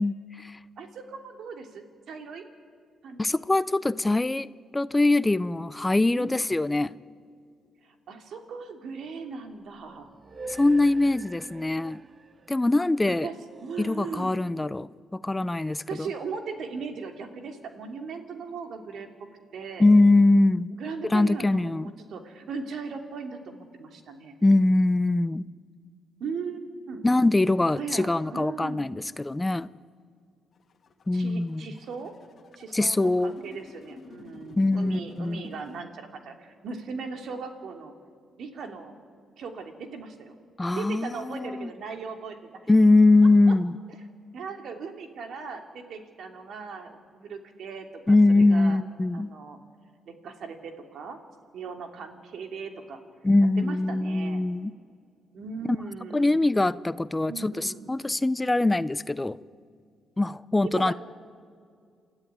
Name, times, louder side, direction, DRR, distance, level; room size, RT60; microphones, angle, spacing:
voice 1, 0.0-0.6 3.2-4.5 4.7-6.9 10.5-12.0 12.5-13.3 13.8-15.8 19.8-20.7 21.0-21.9 24.4-25.5 27.0-29.7 31.1-31.7 32.7-33.3 34.6-35.5 40.6-41.7 42.7-43.8 48.1-49.3 53.2-54.7 56.1-59.4 60.2-60.9, left 2 dB, 15° left, 17 dB, 0.5 m, -22 dB
voice 2, 0.8-2.5 3.0-3.4 6.1-6.6 7.8-10.1 13.0-14.4 15.6-19.8 20.8-24.4 26.2-27.1 27.8-29.0 31.1-32.1 32.6-37.9 38.4-38.9 39.4-40.4 40.8-42.6 44.3-48.8 49.1-49.6 50.1-51.2 51.5-53.0 53.6-54.4 55.3-56.4 57.2-57.9 60.7-60.9, right 5 dB, 65° right, 5 dB, 2.8 m, -38 dB
sound 1, 8.9-14.3, right 3 dB, 35° right, 1.0 m, -47 dB
sound 2, 30.5-35.8, left 5 dB, 50° left, 2.0 m, -51 dB
28.0 x 13.0 x 9.4 m, 2.2 s
cardioid pair, 90°, 0 cm